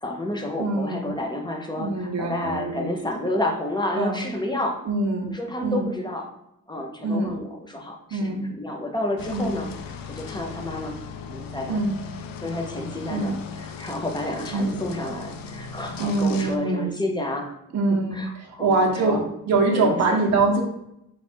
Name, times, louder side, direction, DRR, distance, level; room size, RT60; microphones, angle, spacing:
voice 1, 0.0-4.8 5.3-6.3 6.7-9.7 10.1-11.0 11.3-11.8 12.4-17.5 17.9-18.7 19.0-19.2 19.7-20.2, left 1 dB, 15° left, 2 dB, 0.6 m, -30 dB
voice 2, 0.6-1.1 1.8-2.9 3.9-4.2 4.9-5.3 5.6-5.9 7.0-7.4 8.1-8.5 9.3-9.6 11.7-12.0 13.1-13.4 14.5-14.8 16.0-16.9 17.7-19.2 19.5-20.6, right 3 dB, 50° right, 0 dB, 0.8 m, -24 dB
sound 1, 9.2-16.6, left 6 dB, 70° left, 0.5 m, -38 dB
4.6 x 2.3 x 4.2 m, 0.80 s
wide cardioid pair, 165°, 35 cm